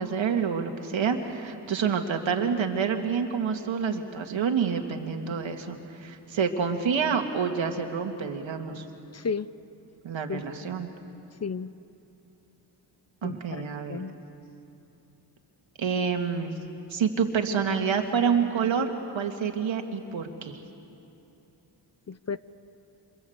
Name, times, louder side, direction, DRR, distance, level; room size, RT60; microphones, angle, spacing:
voice 1, 0.0-8.9 10.0-10.9 13.2-14.0 15.8-16.6 16.9-20.6, right 6 dB, 80° right, 4 dB, 2.3 m, -28 dB
voice 2, 9.1-9.5 10.3-10.7 11.4-11.7 13.2-13.6 13.9-14.2 22.1-22.4, left 5 dB, 35° left, 15 dB, 0.7 m, -33 dB
27.5 x 27.0 x 8.1 m, 2.9 s
cardioid pair, 70°, 45 cm